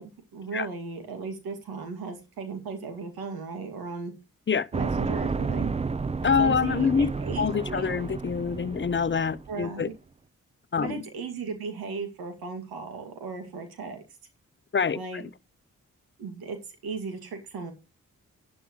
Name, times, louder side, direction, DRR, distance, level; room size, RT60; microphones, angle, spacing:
voice 1, 0.0-4.1 4.7-5.7 6.4-7.9 9.5-9.9 10.8-14.0 14.9-15.3 16.2-16.6 16.8-17.7, right 4 dB, 85° right, 2.4 m, -36 dB
sound 1, 4.7-9.7, right 4 dB, 20° right, 0.5 m, -31 dB
voice 2, 6.2-7.1 7.4-9.9 10.7-11.0 14.7-15.2, left 6 dB, 30° left, 0.8 m, -26 dB
11.5 x 10.5 x 3.2 m
supercardioid pair, 40°, 36 cm